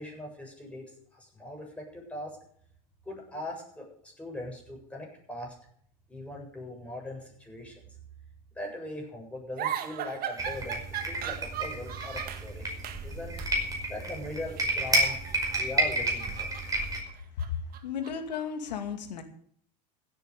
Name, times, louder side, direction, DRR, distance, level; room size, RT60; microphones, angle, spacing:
voice 1, 0.0-2.4 3.1-5.5 6.1-7.9 8.5-13.3 13.9-15.2 15.6-16.5, left 1 dB, 5° left, -1 dB, 7.8 m, -40 dB
sound 1, 9.6-12.5 12.8-13.1 13.4-13.6 14.5-15.6 16.0-18.4, right 10 dB, 45° right, 1.7 m, -38 dB
sound 2, 10.4-17.0, right 1 dB, 15° right, 5.4 m, -31 dB
voice 2, 17.4-19.2, left 7 dB, 90° left, 6 dB, 2.4 m, -34 dB
16.0 x 8.9 x 6.8 m, 0.62 s
hypercardioid pair, 95°, 21 cm